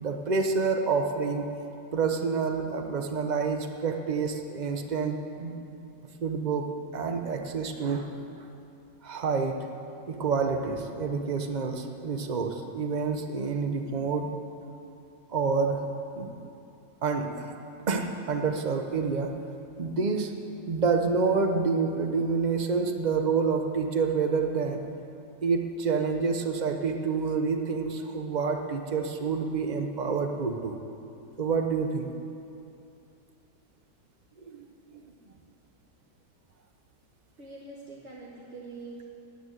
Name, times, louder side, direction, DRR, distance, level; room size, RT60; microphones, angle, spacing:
voice 1, 0.0-1.5 1.9-5.6 6.2-6.7 6.9-8.5 9.0-9.6 10.1-14.3 15.3-15.8 16.2-16.3 17.0-17.5 17.9-19.3 19.8-20.3 20.7-24.8 25.4-30.8 31.4-32.1 34.4-35.0, right 5 dB, 55° right, 5 dB, 0.5 m, -28 dB
voice 2, 37.4-39.0, right 3 dB, 40° right, -6 dB, 1.5 m, -44 dB
9.5 x 9.5 x 9.2 m, 2.6 s
omnidirectional pair, 2.0 m